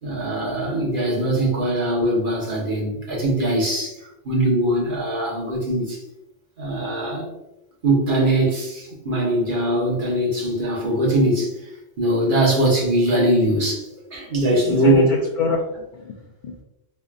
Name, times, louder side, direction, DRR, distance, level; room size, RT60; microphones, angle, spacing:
voice 1, 0.0-4.0 4.2-6.0 6.6-7.3 7.8-11.5 12.0-15.1, right 1 dB, 50° right, -3 dB, 1.2 m, -21 dB
voice 2, 14.3-16.2 16.4-16.6, left 4 dB, 55° left, -3 dB, 0.6 m, -27 dB
3.7 x 3.3 x 2.4 m, 0.89 s
omnidirectional pair, 1.1 m